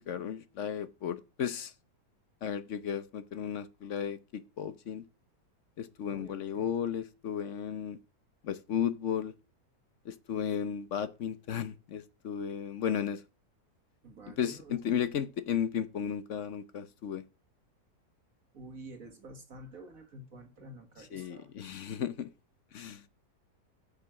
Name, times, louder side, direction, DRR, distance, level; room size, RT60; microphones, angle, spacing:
voice 1, 0.0-1.7 2.4-5.0 5.8-8.0 8.4-9.3 10.0-13.2 14.4-17.2 21.1-22.3 22.7-23.0, left 8 dB, 60° left, 0.9 m, -34 dB
voice 2, 6.1-6.7 14.0-14.8 18.5-21.5, right 1 dB, 55° right, 1.9 m, -49 dB
9.5 x 6.8 x 6.1 m
omnidirectional pair, 1.8 m